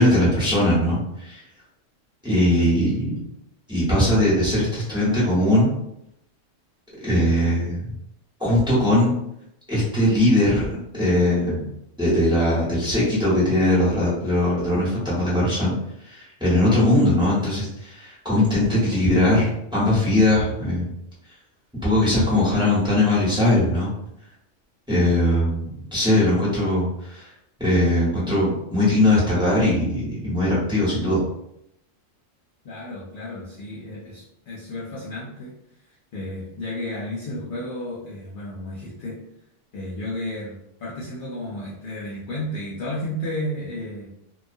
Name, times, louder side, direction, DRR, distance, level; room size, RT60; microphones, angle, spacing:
voice 1, 0.0-1.4 2.2-3.1 3.7-5.7 7.0-7.9 8.4-9.1 9.7-10.7 10.9-11.7 12.0-15.7 16.0-20.9 21.8-23.9 24.9-27.3 27.6-31.2, left 1 dB, 5° right, -8 dB, 0.8 m, -20 dB
voice 2, 32.6-35.5 36.1-39.2 39.7-44.1, left 1 dB, 60° left, -5 dB, 0.5 m, -32 dB
2.3 x 2.2 x 2.5 m, 0.79 s
omnidirectional pair, 1.3 m